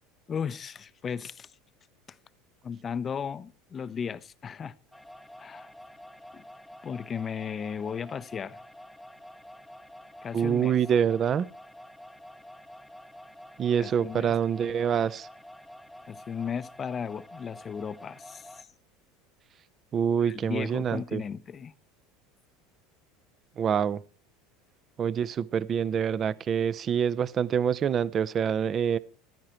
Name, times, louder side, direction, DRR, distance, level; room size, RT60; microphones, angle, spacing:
voice 1, 0.3-1.5 2.1-2.2 2.6-4.7 5.4-5.7 6.3-6.4 6.8-8.6 10.2-10.7 13.8-14.4 16.1-18.7 20.3-21.7, left 7 dB, 30° left, 0.7 m, -35 dB
sound 1, 4.9-18.6, equal, ahead, 0.9 m, -49 dB
voice 2, 10.3-11.5 13.6-15.3 19.9-21.2 23.6-24.0 25.0-29.0, right 8 dB, 35° right, 0.7 m, -26 dB
15.0 x 12.5 x 4.4 m
supercardioid pair, 120°, 0 cm